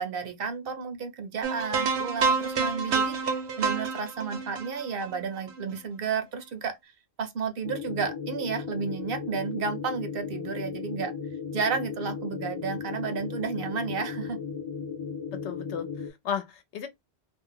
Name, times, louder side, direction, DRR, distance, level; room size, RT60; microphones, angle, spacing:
voice 1, 0.0-6.9 7.2-11.1 11.5-14.4, right 5 dB, 60° right, 0.7 m, -32 dB
sound 1, 1.4-5.7, right 5 dB, 80° right, 1.0 m, -28 dB
sound 2, 7.6-16.1, left 6 dB, 40° left, 0.4 m, -36 dB
voice 2, 15.3-16.9, left 7 dB, 85° left, 0.9 m, -34 dB
2.4 x 2.0 x 3.6 m
omnidirectional pair, 1.1 m